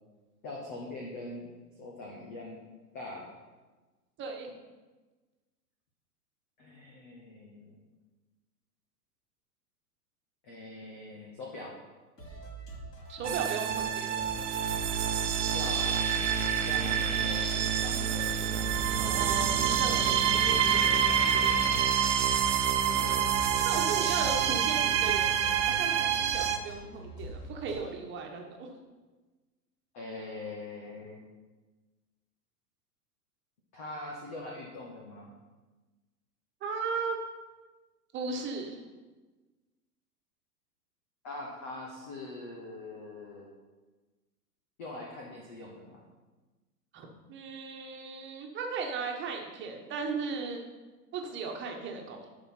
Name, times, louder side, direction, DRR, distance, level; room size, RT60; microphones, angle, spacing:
voice 1, 0.4-1.5 1.8-2.6 2.9-3.3 6.6-7.8 10.4-11.8 15.5-16.3 16.5-18.8 22.8-23.4 29.9-31.2 33.7-35.3 41.2-43.5 44.8-46.0, left 2 dB, 10° left, -1 dB, 0.3 m, -42 dB
voice 2, 4.2-4.5 13.1-14.2 19.0-21.8 23.6-28.8 36.6-37.2 38.1-38.8 46.9-50.6 51.1-52.3, right 5 dB, 25° right, 2 dB, 1.3 m, -37 dB
sound 1, 12.2-27.9, right 1 dB, 85° left, 2.6 m, -45 dB
sound 2, 13.2-26.6, right 8 dB, 45° right, 0.8 m, -27 dB
11.0 x 4.3 x 5.7 m, 1.2 s
figure-of-eight pair, 100°, 47 cm